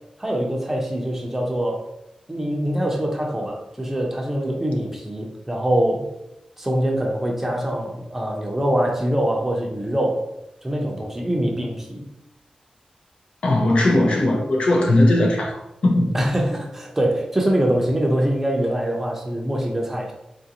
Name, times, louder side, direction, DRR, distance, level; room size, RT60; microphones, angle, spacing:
voice 1, 0.2-1.9 2.3-6.1 6.6-10.3 10.6-12.1 16.1-20.1, right 1 dB, 15° right, 0 dB, 0.6 m, -23 dB
voice 2, 13.4-16.1, left 1 dB, 55° left, 0 dB, 0.6 m, -18 dB
3.8 x 2.5 x 2.8 m, 0.87 s
wide cardioid pair, 160°, 2 cm